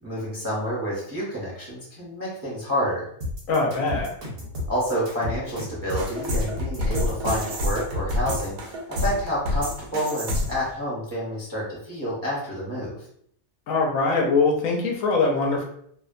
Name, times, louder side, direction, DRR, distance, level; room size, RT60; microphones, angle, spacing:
voice 1, 0.0-3.1 4.6-8.6 8.9-13.0, equal, 20° right, -7 dB, 0.6 m, -29 dB
sound 1, 3.2-8.6, left 2 dB, 65° right, 1.2 m, -33 dB
voice 2, 3.5-4.1 13.7-15.6, left 3 dB, 75° left, 0 dB, 1.0 m, -22 dB
sound 2, 5.9-10.7, left 1 dB, 85° right, 1.0 m, -28 dB
2.7 x 2.1 x 2.4 m, 0.67 s
omnidirectional pair, 1.4 m